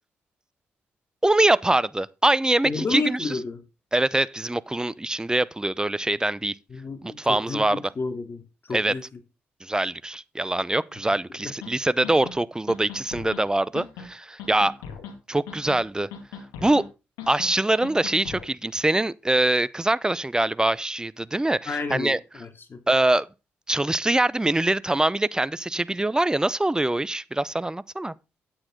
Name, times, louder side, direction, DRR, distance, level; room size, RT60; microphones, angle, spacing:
voice 1, 1.2-3.4 3.9-6.5 7.0-7.8 8.7-8.9 9.6-14.8 15.3-16.1 16.6-16.8 17.3-22.2 22.9-23.3 23.7-28.1, right 2 dB, 15° right, 0.7 m, -23 dB
voice 2, 2.6-3.6 6.7-9.0 21.7-22.8, left 4 dB, 40° left, 2.9 m, -31 dB
sound 1, 11.6-11.7 12.0-12.4 12.7-13.4 13.7-14.1 14.4-15.1 15.5-15.8 16.1-16.9 17.2-17.5 17.8-18.5, left 6 dB, 80° left, 2.2 m, -39 dB
9.8 x 8.8 x 3.8 m
hypercardioid pair, 45°, 6 cm